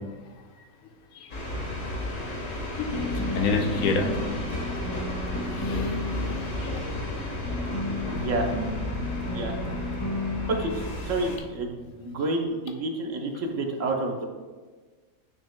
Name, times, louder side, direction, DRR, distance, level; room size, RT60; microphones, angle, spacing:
sound 1, 1.3-11.4, left 1 dB, 60° left, 1.7 m, -33 dB
voice 1, 2.8-4.3 5.5-6.0 6.7-6.8, left 3 dB, 85° left, 5 dB, 1.2 m, -28 dB
sound 2, 2.9-12.2, left 2 dB, 40° left, 0.4 m, -34 dB
voice 2, 8.1-8.5 9.3-9.5 10.5-14.3, right 2 dB, 65° right, 2 dB, 1.2 m, -29 dB
9.3 x 6.2 x 2.2 m, 1.4 s
omnidirectional pair, 1.5 m